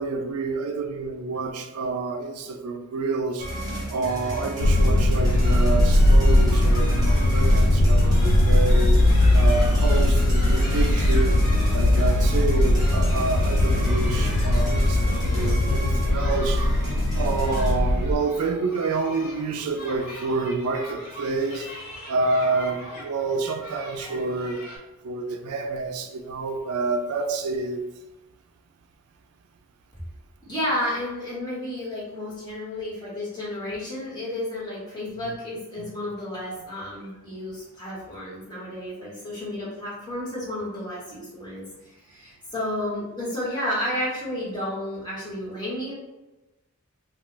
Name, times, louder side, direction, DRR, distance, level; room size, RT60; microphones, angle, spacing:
voice 1, 0.0-3.5 3.9-8.9 9.3-11.4 11.7-16.6 17.2-21.7 22.1-24.6 25.0-27.8 35.8-35.9, right 3 dB, 85° right, 5 dB, 0.4 m, -28 dB
sound 1, 3.4-17.7, equal, 20° right, 0.8 m, -32 dB
sound 2, 4.6-18.2, left 1 dB, 55° left, 0.3 m, -19 dB
sound 3, 5.2-24.8, left 1 dB, 90° left, 1.0 m, -42 dB
voice 2, 30.5-45.9, left 1 dB, 20° left, -8 dB, 1.2 m, -32 dB
2.3 x 2.3 x 3.8 m, 1.0 s
head